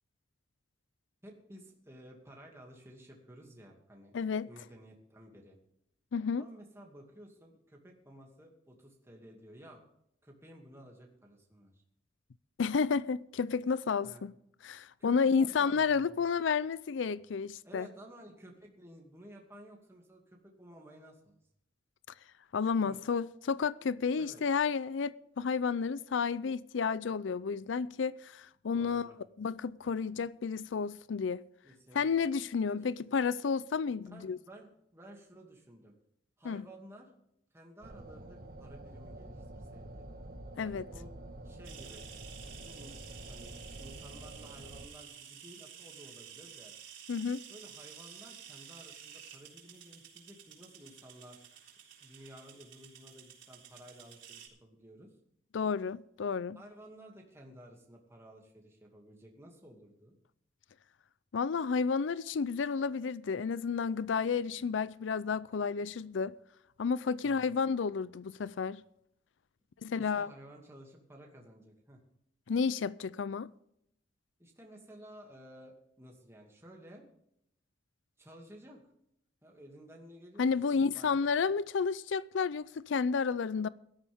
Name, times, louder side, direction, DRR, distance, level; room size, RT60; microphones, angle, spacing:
voice 1, 1.2-4.1 4.5-5.6 6.4-9.8 10.2-11.8 14.0-14.3 15.0-16.3 17.6-21.4 22.8-23.0 24.1-24.4 28.7-29.2 31.6-32.3 32.7-33.0 34.0-36.0 36.4-37.1 37.5-40.0 40.6-41.1 41.4-42.0 42.4-43.0 43.3-46.7 47.5-51.4 52.0-55.1 56.6-60.2 67.2-67.6 70.0-72.0 74.4-77.1 78.2-78.8 79.4-80.5 80.7-81.3, equal, 15° right, 2.4 m, -54 dB
voice 2, 4.1-4.5 6.1-6.5 12.6-14.3 14.6-17.9 22.5-29.1 29.4-31.4 31.9-34.4 36.4-36.6 40.6-40.8 47.1-47.4 55.5-56.6 61.3-66.3 66.8-68.8 69.8-70.3 72.5-73.5 80.4-83.7, left 5 dB, 75° left, 0.4 m, -31 dB
sound 1, 37.8-44.9, right 1 dB, 50° right, 1.4 m, -48 dB
sound 2, 41.6-54.5, right 9 dB, 75° right, 3.7 m, -52 dB
17.5 x 13.0 x 3.6 m
head